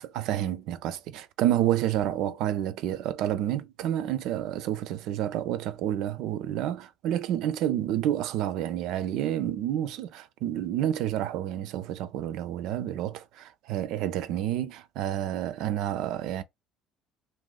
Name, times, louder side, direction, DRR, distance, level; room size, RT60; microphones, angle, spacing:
voice 1, 0.1-16.4, right 11 dB, 65° right, 0.3 m, -29 dB
2.5 x 2.2 x 3.9 m
hypercardioid pair, 60°, 0 cm